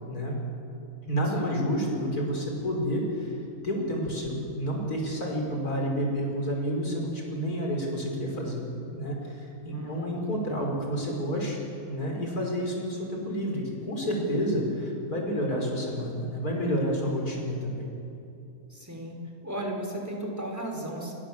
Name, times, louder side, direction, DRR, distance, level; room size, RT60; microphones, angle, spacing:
voice 1, 0.1-0.4 1.1-3.4 3.6-8.6 8.9-11.6 11.9-17.8, equal, 80° left, 0 dB, 5.7 m, -29 dB
voice 2, 1.4-1.7 9.7-10.3 18.7-19.2 19.4-21.1, right 1 dB, 10° right, 1 dB, 4.6 m, -35 dB
29.0 x 22.0 x 7.5 m, 2.8 s
omnidirectional pair, 1.6 m